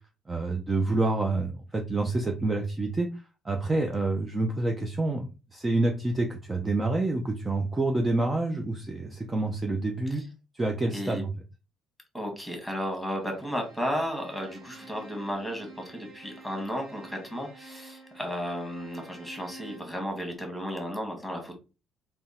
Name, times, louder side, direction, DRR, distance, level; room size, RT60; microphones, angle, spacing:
voice 1, 0.3-3.1 3.4-10.2 10.5-11.3, right 2 dB, 20° right, 3 dB, 0.7 m, -28 dB
voice 2, 10.9-11.2 12.1-21.5, equal, ahead, 2 dB, 1.8 m, -34 dB
Bowed string instrument, 13.2-20.0, right 2 dB, 45° right, 1.8 m, -49 dB
3.5 x 3.0 x 4.3 m, 0.31 s
cardioid pair, 110°, 0 cm